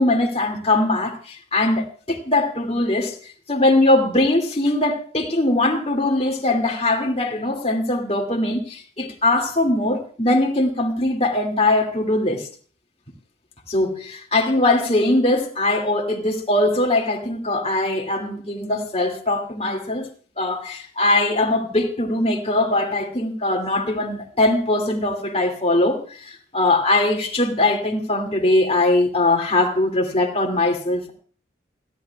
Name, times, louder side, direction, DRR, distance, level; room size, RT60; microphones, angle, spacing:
voice 1, 0.0-3.2 3.5-12.5 13.7-20.1 20.4-31.1, left 2 dB, 30° left, 2.2 m, -21 dB
29.0 x 10.5 x 2.3 m
head